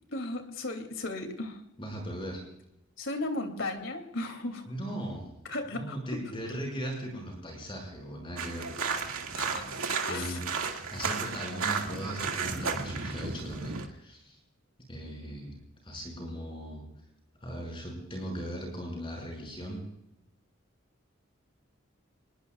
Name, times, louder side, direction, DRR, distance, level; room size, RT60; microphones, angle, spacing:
voice 1, 0.1-1.6 3.0-4.7 5.5-6.0 9.3-9.6 10.1-10.4, left 2 dB, 65° left, 6 dB, 2.8 m, -35 dB
voice 2, 1.8-2.4 4.7-5.3 5.7-8.7 10.1-14.4 14.9-15.6 15.8-16.8 17.4-19.8, equal, 25° left, 0 dB, 5.9 m, -38 dB
sound 1, 8.4-13.9, right 5 dB, 85° right, 2.2 m, -33 dB
27.5 x 21.0 x 2.4 m, 0.83 s
head